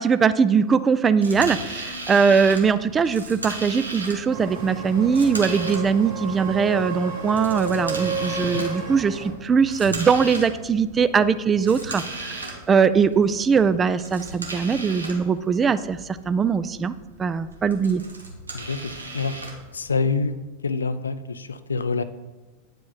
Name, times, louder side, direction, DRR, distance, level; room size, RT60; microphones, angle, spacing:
voice 1, 0.0-16.9 17.2-18.0, right 6 dB, 20° right, 13 dB, 0.3 m, -21 dB
sound 1, 1.2-20.3, right 2 dB, 80° right, 1.1 m, -37 dB
sound 2, 4.3-9.3, right 4 dB, 60° right, 1.4 m, -31 dB
voice 2, 18.5-19.4 19.7-20.4 20.6-22.0, left 4 dB, 75° left, 13 dB, 0.4 m, -26 dB
9.2 x 4.9 x 4.0 m, 1.2 s
figure-of-eight pair, 90°, 0 cm